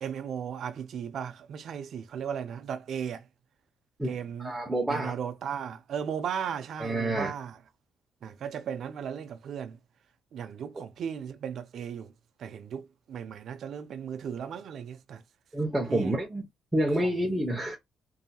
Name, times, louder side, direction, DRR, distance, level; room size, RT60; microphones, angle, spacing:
voice 1, 0.0-3.2 4.0-4.5 4.9-7.6 8.2-9.8 10.3-12.1 12.4-15.2 15.9-16.2 17.0-17.1, right 8 dB, 65° right, 0.4 m, -36 dB
voice 2, 4.4-5.1 6.8-7.3 15.5-16.4 16.7-17.8, right 1 dB, 10° right, 0.8 m, -28 dB
2.7 x 2.7 x 2.2 m
cardioid pair, 90°, 0 cm